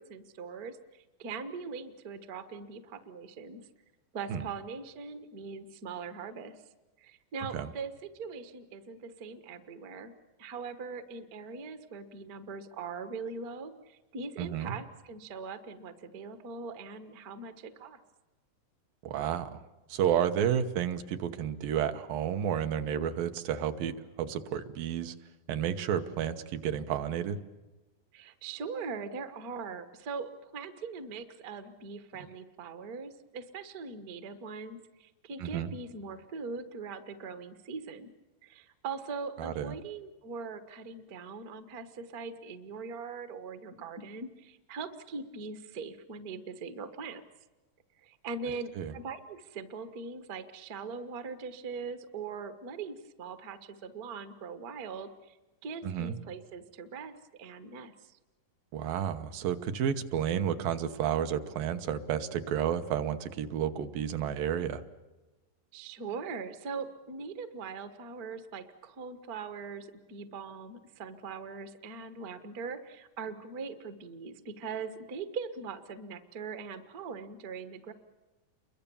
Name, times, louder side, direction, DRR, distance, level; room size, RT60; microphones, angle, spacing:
voice 1, 0.0-3.6 4.1-6.6 7.0-10.1 10.4-18.0 28.1-38.1 38.4-47.2 48.0-55.4 55.6-58.2 65.7-77.9, right 5 dB, 60° right, 10 dB, 0.9 m, -41 dB
voice 2, 14.4-14.7 19.0-19.6 19.9-25.1 25.5-27.4 35.4-35.7 39.4-39.7 48.8-48.9 55.8-56.2 58.7-64.8, right 9 dB, 85° right, 8 dB, 2.9 m, -31 dB
29.0 x 23.5 x 7.1 m, 1.1 s
omnidirectional pair, 3.9 m